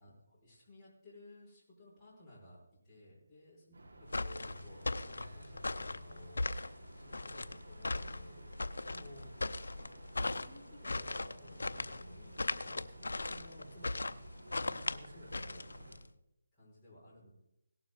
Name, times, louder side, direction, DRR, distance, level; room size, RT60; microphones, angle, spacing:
voice 1, 0.0-9.3 9.8-9.9 10.2-14.1 14.5-16.0 16.5-17.3, left 1 dB, 10° left, -9 dB, 5.9 m, -57 dB
sound 1, 3.7-16.0, right 2 dB, 75° right, 4.8 m, -55 dB
sound 2, 4.1-16.1, left 2 dB, 85° left, 0.6 m, -38 dB
sound 3, 4.1-9.4, left 3 dB, 55° left, 1.5 m, -58 dB
18.0 x 12.0 x 4.0 m, 0.84 s
figure-of-eight pair, 165°, 0 cm